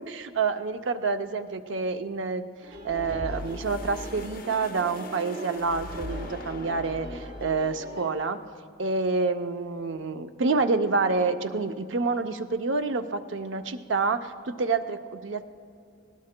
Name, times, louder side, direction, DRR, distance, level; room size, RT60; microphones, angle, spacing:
voice 1, 0.0-2.5 2.8-8.4 8.8-15.5, right 4 dB, 70° right, 8 dB, 0.6 m, -28 dB
sound 1, 2.6-8.1, right 1 dB, 50° right, 3.7 m, -42 dB
sound 2, 2.7-8.0, left 2 dB, 45° left, 0.5 m, -40 dB
20.0 x 18.0 x 2.2 m, 2.4 s
head